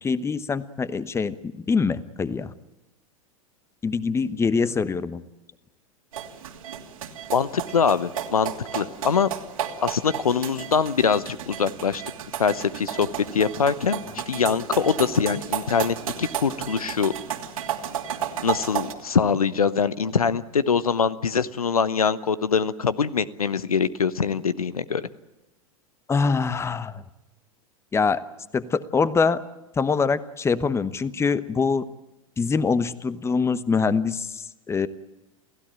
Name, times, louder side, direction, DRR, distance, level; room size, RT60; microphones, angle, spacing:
voice 1, 0.0-2.5 3.8-5.2 26.1-27.0 27.9-28.2 28.5-29.4 29.8-31.8 32.4-34.9, left 5 dB, 15° left, 16 dB, 1.0 m, -24 dB
sound 1, 6.1-18.9, right 9 dB, 70° right, 2.9 m, -33 dB
voice 2, 7.3-9.3 9.8-12.0 12.4-13.1 13.3-14.0 14.3-17.1 18.4-25.0, left 6 dB, 80° left, 16 dB, 0.9 m, -23 dB
28.5 x 16.0 x 8.9 m, 1.0 s
figure-of-eight pair, 90°, 18 cm